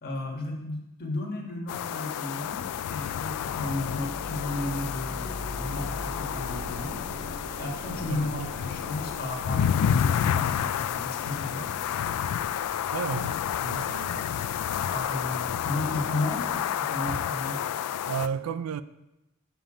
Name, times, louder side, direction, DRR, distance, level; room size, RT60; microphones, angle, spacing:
voice 1, 0.0-6.9 7.6-11.7 14.9-17.6, left 2 dB, 45° left, 1.5 m, -34 dB
sound 1, 1.7-18.3, left 9 dB, 90° left, 0.3 m, -30 dB
sound 2, 2.5-11.0, left 1 dB, 35° right, 0.8 m, -41 dB
sound 3, 5.4-16.7, equal, ahead, 0.5 m, -49 dB
voice 2, 8.1-8.5 12.9-14.3 14.6-14.7 18.1-18.8, right 6 dB, 70° right, 0.3 m, -33 dB
7.3 x 5.5 x 5.0 m
head